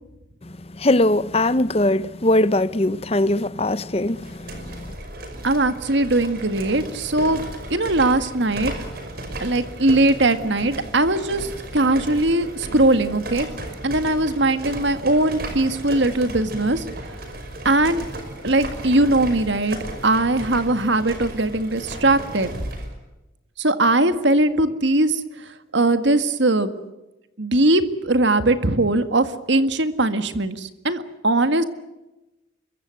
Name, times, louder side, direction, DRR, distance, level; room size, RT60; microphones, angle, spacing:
voice 1, 0.8-4.3, left 1 dB, 30° left, 0.8 m, -20 dB
sound 1, 4.1-22.9, right 1 dB, 50° right, 5.5 m, -35 dB
voice 2, 5.4-7.4 7.7-8.7 9.4-13.5 13.8-16.9 17.6-18.0 18.4-22.5 23.6-26.7 27.4-31.6, right 2 dB, 70° right, 1.8 m, -20 dB
26.0 x 23.0 x 7.7 m
head